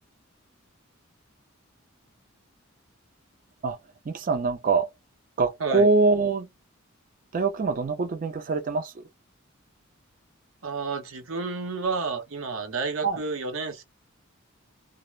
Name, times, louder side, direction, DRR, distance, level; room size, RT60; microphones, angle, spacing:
voice 1, 4.0-4.9 5.4-6.5 7.3-9.1 13.0-13.2, right 3 dB, 40° right, 0.4 m, -24 dB
voice 2, 10.6-13.8, right 4 dB, 80° right, 0.8 m, -30 dB
2.4 x 2.0 x 3.1 m
head